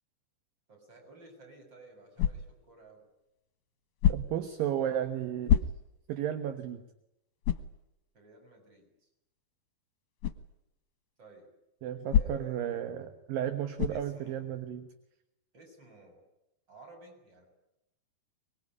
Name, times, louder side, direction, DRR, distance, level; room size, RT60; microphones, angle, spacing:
voice 1, 0.7-3.0 8.1-9.1 11.2-11.5 12.1-13.1 13.9-14.5 15.5-16.2 16.7-17.5, right 2 dB, 25° right, 3 dB, 7.1 m, -54 dB
sound 1, 2.2-2.7 4.0-4.5 5.5-6.1 6.6-6.7 7.4-7.8 10.2-10.5 12.1-12.6 13.8-14.1, left 9 dB, 65° left, 2.7 m, -27 dB
voice 2, 4.1-5.6 6.1-6.8 11.8-14.9, right 10 dB, 65° right, 9 dB, 2.9 m, -33 dB
25.0 x 22.0 x 9.7 m, 0.89 s
omnidirectional pair, 4.7 m